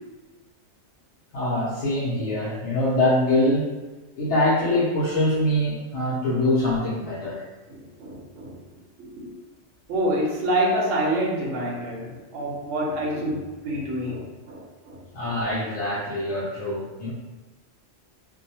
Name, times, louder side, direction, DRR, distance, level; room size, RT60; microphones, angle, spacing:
voice 1, 1.3-3.7 4.2-7.4 15.1-17.1, left 1 dB, 70° left, -8 dB, 0.9 m, -24 dB
voice 2, 7.7-8.6 9.0-9.3 9.9-15.4, right 1 dB, 75° right, -3 dB, 1.0 m, -27 dB
2.6 x 2.1 x 2.7 m, 1.2 s
omnidirectional pair, 1.3 m